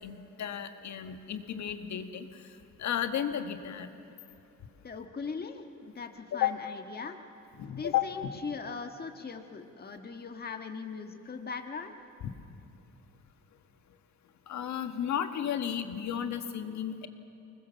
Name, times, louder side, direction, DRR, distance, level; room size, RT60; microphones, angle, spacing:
voice 1, 0.0-2.3 2.8-3.9 6.3-6.5 7.6-8.0 14.5-17.1, left 10 dB, 65° left, 8 dB, 1.6 m, -33 dB
voice 2, 4.8-7.2 7.7-12.0, left 5 dB, 30° left, 5 dB, 1.5 m, -40 dB
25.0 x 20.5 x 7.2 m, 2.9 s
cardioid pair, 90°, 30 cm